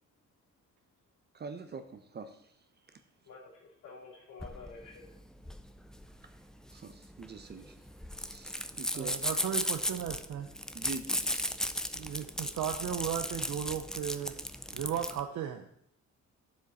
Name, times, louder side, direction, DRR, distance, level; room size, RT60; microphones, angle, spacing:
voice 1, 1.3-2.5 2.9-3.0 6.2-6.3 6.7-7.8 8.1-9.1 10.7-12.0, right 4 dB, 35° right, 8 dB, 0.7 m, -45 dB
voice 2, 3.2-5.2 5.4-5.5, left 4 dB, 90° left, -3 dB, 3.3 m, -50 dB
sound 1, 4.4-15.2, equal, ahead, 0.4 m, -36 dB
voice 3, 8.9-10.5 11.9-14.3 14.7-15.7, right 9 dB, 80° right, 5 dB, 0.8 m, -36 dB
9.3 x 7.4 x 4.2 m, 0.70 s
cardioid pair, 145°, 29 cm